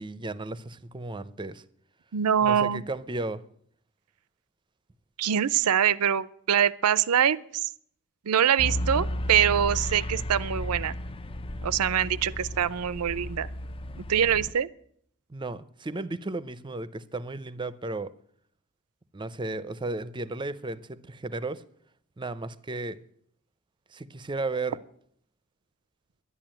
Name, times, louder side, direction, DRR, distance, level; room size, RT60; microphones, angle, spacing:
voice 1, 0.0-1.6 2.4-3.4 15.3-18.1 19.1-21.6 22.2-23.0 23.9-24.8, right 2 dB, 20° right, 0.6 m, -34 dB
voice 2, 2.1-2.8 5.2-7.4 8.3-10.9 11.6-13.5 14.0-14.7, right 9 dB, 85° right, 0.5 m, -24 dB
sound 1, 8.6-14.5, left 1 dB, 25° left, 0.5 m, -33 dB
11.0 x 10.5 x 9.0 m
head